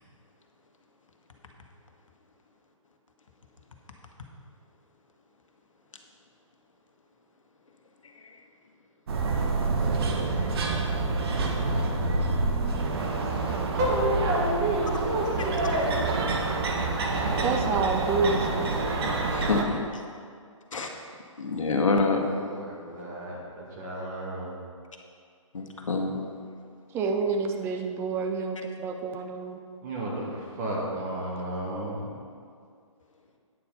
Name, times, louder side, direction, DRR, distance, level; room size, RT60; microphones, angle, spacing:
sound 1, 9.1-19.6, right 3 dB, 50° right, 1.3 m, -27 dB
voice 1, 13.7-16.1 18.5-19.4 22.4-24.5 29.8-32.1, right 1 dB, 35° right, -4 dB, 2.4 m, -31 dB
voice 2, 17.4-18.7 26.9-29.6, right 4 dB, 15° right, 5 dB, 0.6 m, -28 dB
voice 3, 19.3-19.8 20.7-20.9 21.4-22.3 25.5-26.2, left 3 dB, 75° left, 2 dB, 1.5 m, -26 dB
9.5 x 7.0 x 5.4 m, 2.2 s
figure-of-eight pair, 140°, 17 cm